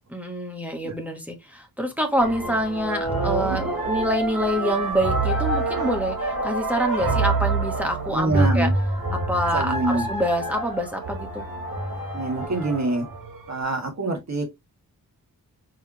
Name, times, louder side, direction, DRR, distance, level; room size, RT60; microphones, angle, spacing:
voice 1, 0.1-8.7 9.1-11.4, equal, 5° right, 1.2 m, -26 dB
sound 1, 2.2-13.5, right 2 dB, 85° right, 2.4 m, -26 dB
voice 2, 8.1-8.7 9.5-10.1 12.1-13.1 13.5-14.4, right 2 dB, 50° right, 1.7 m, -25 dB
4.7 x 3.3 x 3.0 m
wide cardioid pair, 150°, 36 cm